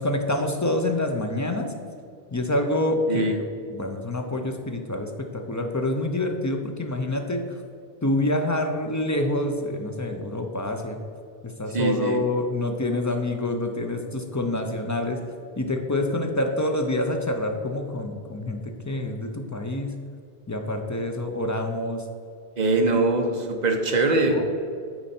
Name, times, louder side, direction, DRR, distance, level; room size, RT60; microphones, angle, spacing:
voice 1, 0.0-1.7 2.3-3.4 3.7-7.6 8.0-11.0 11.4-15.2 15.6-19.9 20.5-22.1 24.3-24.4, left 1 dB, 30° left, 4 dB, 0.3 m, -27 dB
voice 2, 3.1-3.4 11.7-12.2 22.6-24.4, right 2 dB, 45° right, 3 dB, 0.9 m, -22 dB
8.7 x 4.3 x 4.3 m, 2.4 s
omnidirectional pair, 1.1 m